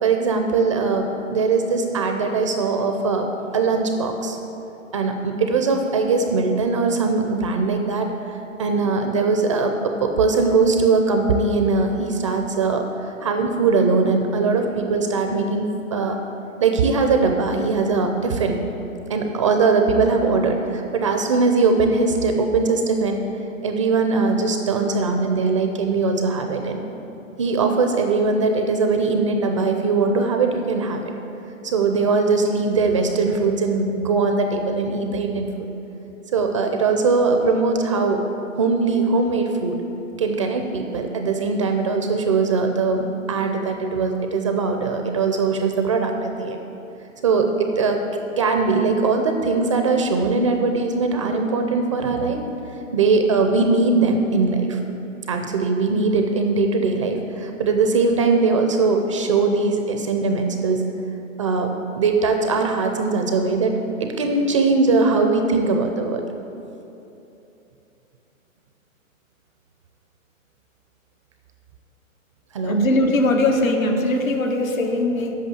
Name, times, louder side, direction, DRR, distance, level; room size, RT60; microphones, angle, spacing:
voice 1, 0.0-3.3 3.5-4.4 4.9-16.2 16.6-18.6 19.1-23.3 23.6-26.8 27.4-31.0 31.6-35.7 36.3-38.2 38.6-39.8 40.2-46.6 47.2-48.0 48.4-52.5 52.9-54.8 55.3-60.8 61.4-63.7 64.0-66.2 72.5-72.8, right 4 dB, 25° right, 5 dB, 0.4 m, -21 dB
voice 2, 72.6-75.3, left 1 dB, 75° left, 3 dB, 1.5 m, -20 dB
8.4 x 6.3 x 8.3 m, 3.0 s
hypercardioid pair, 135°, 41 cm